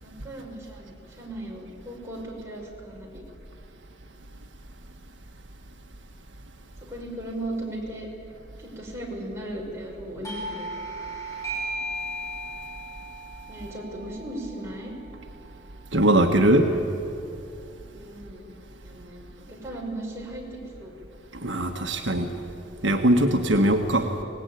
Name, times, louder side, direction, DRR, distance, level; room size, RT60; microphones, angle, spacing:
voice 1, 0.0-3.3 6.9-8.1 8.6-10.7 13.5-14.9 17.9-18.5 18.8-20.9, right 1 dB, 15° right, -3 dB, 5.4 m, -37 dB
Doorbell, 10.2-15.5, right 1 dB, 15° left, 4.1 m, -36 dB
voice 2, 15.9-16.7 21.3-22.3 22.8-24.1, right 1 dB, 75° right, 3 dB, 1.5 m, -21 dB
25.0 x 19.0 x 9.2 m, 2.7 s
head